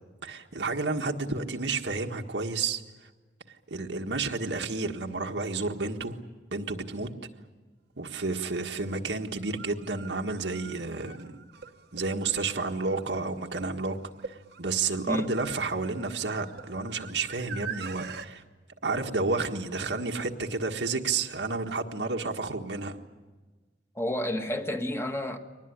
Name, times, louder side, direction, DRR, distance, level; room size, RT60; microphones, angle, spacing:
voice 1, 0.2-3.1 3.5-6.2 6.5-7.1 8.0-11.4 11.9-14.0 14.2-18.4 18.8-23.0, right 3 dB, 85° right, 1.6 m, -31 dB
sound 1, 8.2-8.3 9.4-18.3, right 6 dB, 65° right, 1.1 m, -44 dB
voice 2, 23.9-25.4, left 1 dB, 15° left, 1.6 m, -30 dB
23.5 x 19.5 x 9.9 m
head